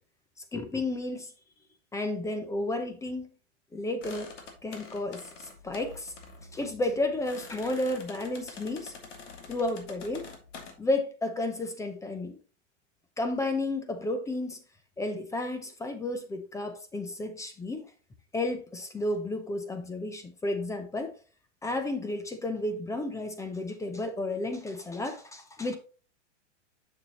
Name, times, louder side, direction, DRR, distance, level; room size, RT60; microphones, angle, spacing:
voice 1, 0.5-1.3 1.9-3.3 3.7-4.3 4.6-6.1 6.5-8.9 9.5-10.3 10.8-12.4 13.2-14.6 15.0-17.8 18.3-21.1 21.6-25.8, left 2 dB, 10° left, 0.5 m, -32 dB
sound 1, 4.0-10.7, left 4 dB, 80° left, 1.9 m, -47 dB
6.7 x 6.3 x 2.9 m
hypercardioid pair, 130°, 36 cm